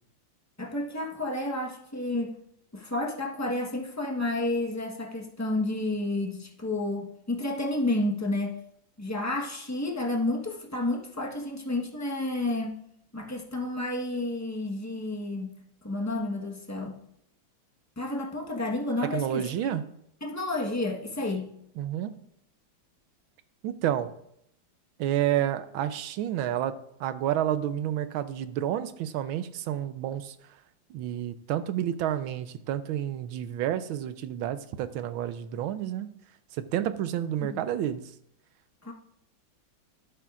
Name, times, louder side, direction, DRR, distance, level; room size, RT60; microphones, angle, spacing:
voice 1, 0.6-2.3 2.7-8.6 9.0-12.8 13.1-15.6 15.8-17.0 18.0-19.8 20.2-21.6 37.4-37.6 38.8-38.9, left 2 dB, 10° left, 0 dB, 0.8 m, -31 dB
voice 2, 19.1-19.8 21.8-22.1 23.6-24.1 25.0-26.7 27.0-30.3 30.9-36.1 36.5-38.0, right 11 dB, 90° right, 12 dB, 1.5 m, -30 dB
12.5 x 10.5 x 2.5 m, 0.73 s
omnidirectional pair, 2.2 m